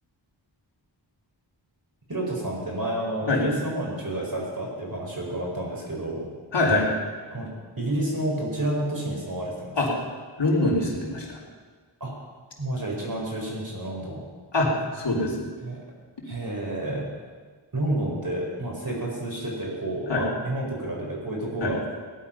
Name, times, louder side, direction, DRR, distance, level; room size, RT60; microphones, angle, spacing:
voice 1, 2.1-6.2 7.3-7.5 7.8-9.8 12.0-12.1 12.6-14.2 15.6-15.8 16.2-17.1 17.7-21.8, right 1 dB, 45° right, -2 dB, 4.9 m, -30 dB
voice 2, 6.5-6.9 9.8-9.9 10.4-11.4 14.5-14.7 14.9-15.4 20.1-20.2 21.6-21.7, left 2 dB, 65° left, -4 dB, 3.6 m, -23 dB
18.0 x 11.5 x 5.8 m, 1.5 s
wide cardioid pair, 80°, 46 cm